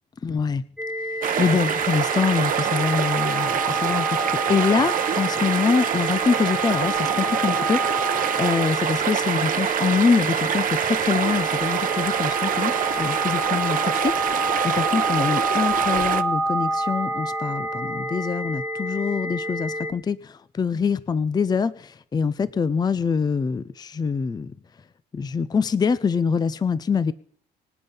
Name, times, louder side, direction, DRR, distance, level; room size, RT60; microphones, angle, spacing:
voice 1, 0.2-0.6 1.1-24.5 25.1-27.1, left 5 dB, 25° left, 17 dB, 0.6 m, -25 dB
sound 1, 0.8-19.9, right 1 dB, 5° right, 1.7 m, -28 dB
sound 2, 1.2-16.2, right 11 dB, 55° right, 0.9 m, -25 dB
24.5 x 8.8 x 5.5 m, 0.63 s
cardioid pair, 110°, 17 cm